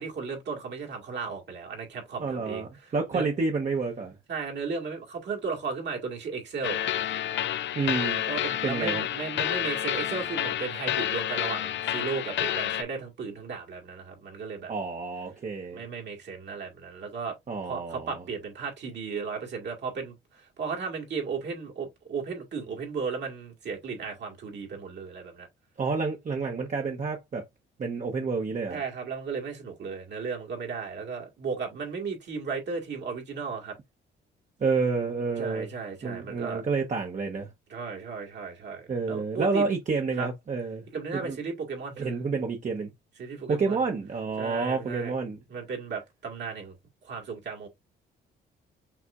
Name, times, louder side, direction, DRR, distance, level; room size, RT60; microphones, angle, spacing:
voice 1, 0.0-3.3 4.3-6.8 8.3-14.7 15.7-17.3 17.6-25.5 28.7-33.8 35.4-36.6 37.7-39.7 40.2-40.3 40.9-42.1 43.2-43.8 44.4-45.1 45.5-46.8 47.0-47.7, right 5 dB, 60° right, 2.1 m, -35 dB
voice 2, 2.2-4.1 7.7-8.2 8.6-9.1 14.7-15.8 17.5-18.2 25.8-27.5 27.8-28.8 34.6-35.7 36.0-37.5 38.9-40.8 41.1-41.4 42.0-42.9 43.5-45.4, right 4 dB, 40° right, 1.1 m, -29 dB
sound 1, 6.6-12.8, left 11 dB, 65° left, 0.6 m, -29 dB
5.9 x 3.3 x 2.5 m
cardioid pair, 90°, 20 cm